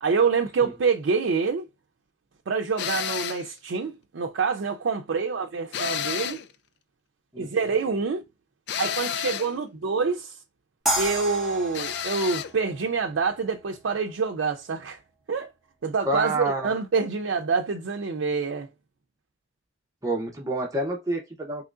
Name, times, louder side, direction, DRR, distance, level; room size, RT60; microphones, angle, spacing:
voice 1, 0.0-1.7 2.5-6.4 7.4-8.2 8.8-10.4 11.0-15.0 15.3-15.5 15.8-18.7, right 5 dB, 85° right, 0.4 m, -26 dB
sound 1, 2.8-3.5 5.7-6.5 8.7-9.5 11.7-12.5, left 9 dB, 60° left, 0.3 m, -30 dB
sound 2, 10.9-13.9, equal, ahead, 1.1 m, -31 dB
voice 2, 16.1-16.7 20.0-21.6, right 2 dB, 15° right, 0.7 m, -28 dB
3.7 x 3.0 x 2.4 m
head